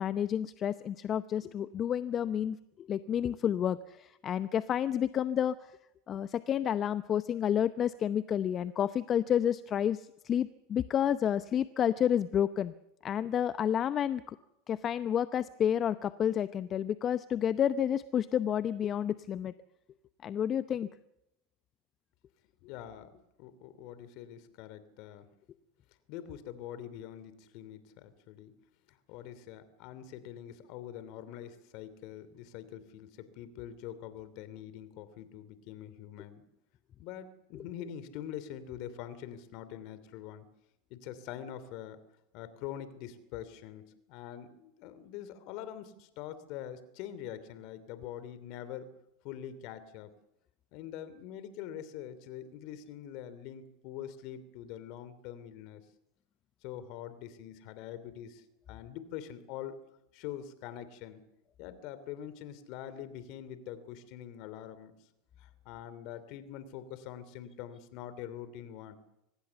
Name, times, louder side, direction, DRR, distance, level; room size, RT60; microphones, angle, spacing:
voice 1, 0.0-5.6 6.1-12.7 13.0-14.4 14.7-19.5 20.2-20.9, left 9 dB, 35° left, 14 dB, 0.7 m, -30 dB
voice 2, 22.6-23.1 23.4-25.3 26.1-28.5 28.9-36.4 37.0-40.5 40.9-42.0 42.3-48.9 49.2-50.1 50.7-55.8 56.6-59.8 60.1-61.2 61.6-64.9 65.4-69.0, left 10 dB, 60° left, 14 dB, 2.8 m, -44 dB
24.5 x 20.0 x 7.0 m, 0.88 s
hypercardioid pair, 95°, 0 cm